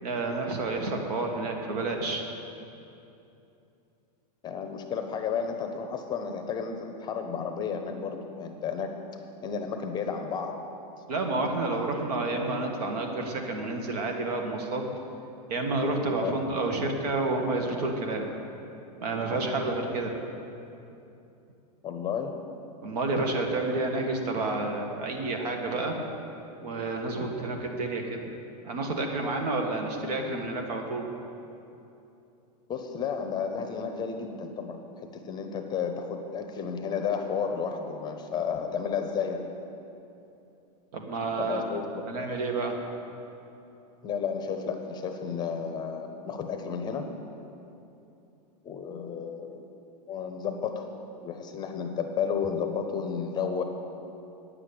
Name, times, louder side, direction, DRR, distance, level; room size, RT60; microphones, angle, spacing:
voice 1, 0.0-2.2 11.1-14.9 15.5-18.3 19.0-20.1 22.8-26.0 26.6-28.2 28.6-31.1 40.9-41.8 42.1-42.8, right 2 dB, 70° right, 3 dB, 1.7 m, -30 dB
voice 2, 4.4-9.1 9.4-10.6 16.2-16.4 21.8-22.4 32.7-39.4 41.4-42.0 44.0-47.1 48.6-49.6 50.0-50.9 51.2-53.6, left 6 dB, 20° left, 5 dB, 0.7 m, -32 dB
9.5 x 7.6 x 8.6 m, 2.8 s
supercardioid pair, 150°, 21 cm